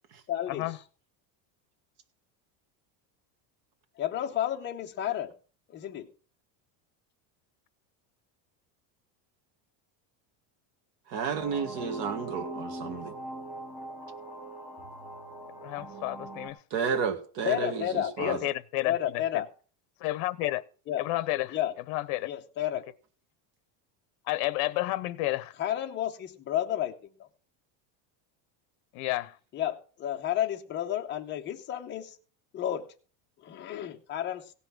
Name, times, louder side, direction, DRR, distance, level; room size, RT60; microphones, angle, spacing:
voice 1, 0.3-0.7 4.0-5.3 5.7-6.1 17.4-18.4 18.8-19.5 20.9-21.0 21.5-21.7 22.2-22.8 25.6-27.3 29.5-32.2 32.5-32.9 33.4-34.5, left 11 dB, 25° left, 0.8 m, -31 dB
voice 2, 11.1-13.1 16.7-18.4, right 6 dB, 55° right, 1.7 m, -31 dB
sound 1, 11.3-16.5, right 1 dB, 5° right, 1.4 m, -41 dB
voice 3, 15.6-16.6 18.2-19.4 20.0-20.6 21.0-21.6 21.9-22.3 24.3-25.5 28.9-29.4, left 17 dB, 65° left, 0.9 m, -31 dB
16.5 x 5.8 x 6.0 m
cardioid pair, 180°, 46 cm